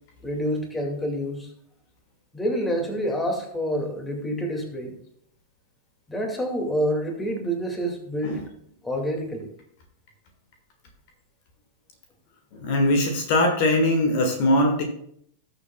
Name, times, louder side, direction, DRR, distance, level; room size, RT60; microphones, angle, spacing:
voice 1, 0.2-1.5 2.3-5.0 6.1-8.4 8.8-9.5, equal, 10° left, 3 dB, 2.3 m, -27 dB
voice 2, 12.6-14.8, left 1 dB, 45° left, 4 dB, 1.8 m, -21 dB
19.0 x 7.0 x 2.3 m, 0.69 s
figure-of-eight pair, 90°, 0 cm